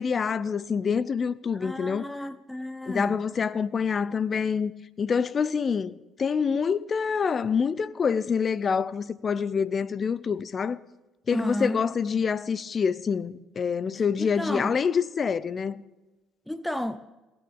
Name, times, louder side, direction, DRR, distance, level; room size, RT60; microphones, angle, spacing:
voice 1, 0.0-2.1 2.9-4.7 5.0-10.8 11.3-15.8, left 6 dB, 40° left, 0.7 m, -26 dB
voice 2, 1.6-3.2 11.3-11.8 14.2-14.8 16.5-17.0, left 1 dB, 5° left, 0.8 m, -32 dB
18.0 x 7.2 x 8.6 m
hypercardioid pair, 60°, 0 cm